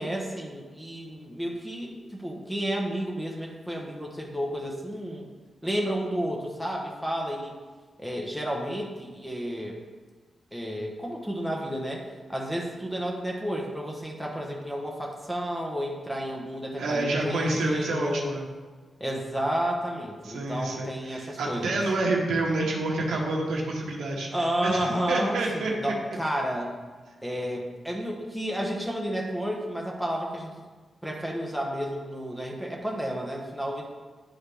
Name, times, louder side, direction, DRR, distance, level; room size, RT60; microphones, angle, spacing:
voice 1, 0.0-5.3 5.6-7.5 8.0-9.8 10.5-18.3 19.0-21.8 24.3-26.7 27.2-30.5 31.0-33.8, equal, ahead, -1 dB, 1.1 m, -31 dB
voice 2, 16.8-18.5 20.2-25.9, right 2 dB, 90° right, -2 dB, 1.1 m, -28 dB
9.6 x 4.0 x 3.4 m, 1.4 s
cardioid pair, 75°, 0 cm